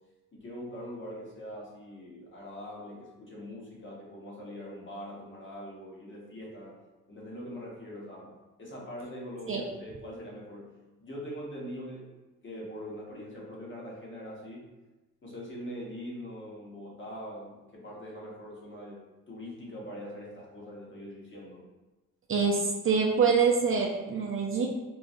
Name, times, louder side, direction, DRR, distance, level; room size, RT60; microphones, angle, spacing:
voice 1, 0.3-6.8 7.1-12.1 12.4-14.7 15.2-21.7, equal, 35° left, -4 dB, 1.1 m, -42 dB
voice 2, 22.3-24.7, right 5 dB, 40° right, -1 dB, 0.5 m, -25 dB
3.9 x 2.3 x 2.5 m, 1.1 s
cardioid pair, 80°, 35 cm